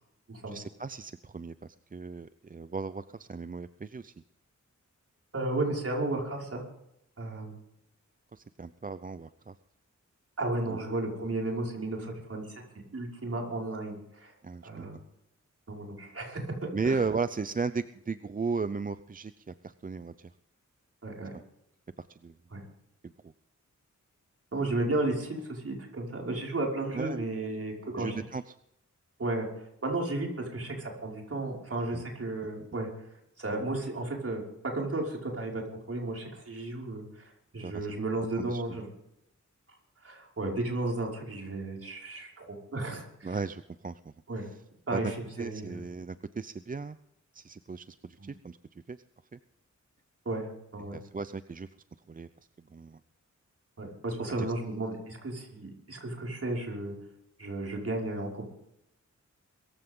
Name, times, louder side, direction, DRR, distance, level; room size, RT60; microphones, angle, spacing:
voice 1, 0.5-4.1 8.3-9.5 10.7-10.8 14.4-14.9 16.7-20.3 21.3-21.4 22.1-22.3 23.0-23.3 26.9-27.2 28.0-28.5 31.9-32.1 32.4-32.5 37.6-37.9 38.4-38.6 43.2-44.0 44.4-44.6 44.9-45.1 45.4-47.0 47.3-48.6 48.9-49.0 49.3-49.4 50.9-51.7 52.1-52.3 52.7-53.0 54.4-54.5, right 4 dB, 30° right, 12 dB, 0.5 m, -36 dB
voice 2, 5.3-6.6 7.2-7.6 10.4-12.6 12.9-14.3 14.6-15.0 15.7-16.5 16.9-17.0 21.0-21.3 22.5-22.6 24.5-28.1 29.2-29.5 29.8-32.9 33.4-34.4 34.7-35.6 35.9-38.9 40.0-43.4 44.3-44.5 44.9-45.8 48.2-48.3 50.3-51.0 53.8-56.9 57.4-58.5, right 2 dB, 50° right, -1 dB, 5.5 m, -33 dB
23.0 x 15.0 x 3.8 m, 0.79 s
wide cardioid pair, 100°, 30 cm